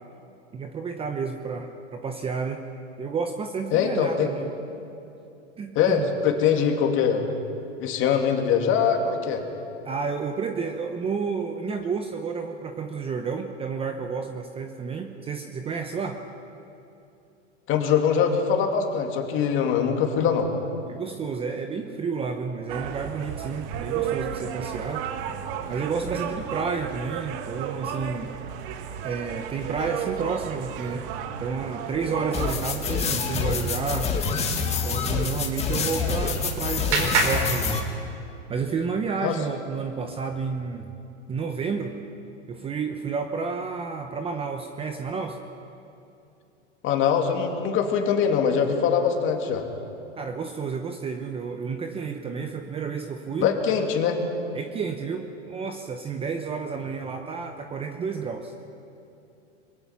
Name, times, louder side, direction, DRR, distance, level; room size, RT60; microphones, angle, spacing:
voice 1, 0.5-2.6 3.0-4.6 5.6-6.1 9.8-16.2 20.9-25.1 25.7-28.3 29.0-31.1 31.4-34.1 34.8-37.9 38.5-40.9 41.3-41.9 42.5-45.4 50.2-53.5 54.5-58.5, right 5 dB, 15° right, 6 dB, 0.9 m, -31 dB
voice 2, 3.7-4.3 5.7-7.2 7.8-9.4 17.7-20.5 39.2-39.4 46.8-49.6 53.4-54.2, left 7 dB, 35° left, 3 dB, 2.7 m, -23 dB
sound 1, 22.7-32.6, right 8 dB, 45° right, 1.5 m, -33 dB
sound 2, 32.3-37.8, left 5 dB, 15° left, 2.2 m, -26 dB
Clapping, 35.8-38.4, right 4 dB, 65° right, 4.3 m, -29 dB
24.0 x 21.5 x 6.0 m, 2.7 s
hypercardioid pair, 130°, 37 cm